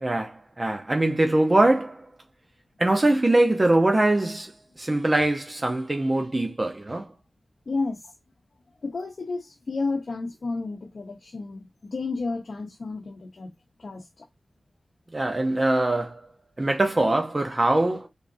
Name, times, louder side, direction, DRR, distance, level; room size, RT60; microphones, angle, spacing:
voice 1, 0.0-2.1 2.8-4.5 4.8-7.1 15.1-16.3 16.6-18.1, right 2 dB, 30° right, 0.8 m, -22 dB
voice 2, 7.7-8.1 8.8-13.5 13.8-14.3, left 3 dB, 70° left, 0.8 m, -31 dB
3.8 x 3.5 x 2.6 m
wide cardioid pair, 80°, 0 cm